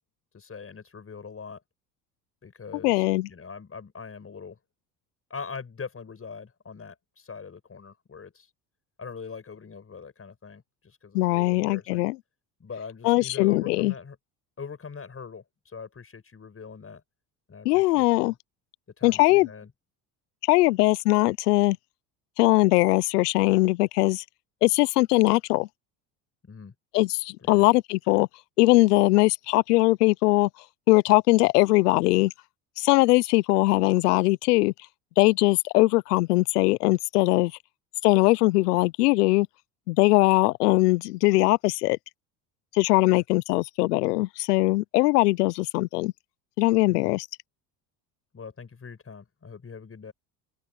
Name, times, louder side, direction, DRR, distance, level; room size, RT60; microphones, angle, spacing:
voice 1, 0.3-1.6 2.4-4.6 5.3-8.5 9.0-12.0 12.6-14.2 14.6-17.0 17.5-18.4 19.0-19.7 26.4-26.7 27.4-27.6 43.0-43.2 46.9-47.1 48.3-50.1, left 5 dB, 30° left, 6.7 m, -42 dB
voice 2, 2.8-3.3 11.1-12.2 13.0-13.9 17.6-18.3 19.0-19.5 20.4-21.8 22.4-24.2 24.6-25.7 26.9-28.3 28.6-30.5 30.9-32.3 32.8-34.7 35.2-37.5 38.0-39.5 39.9-42.0 42.7-46.1 46.6-47.3, left 20 dB, 85° left, 0.7 m, -21 dB
open air
hypercardioid pair, 75°, 45 cm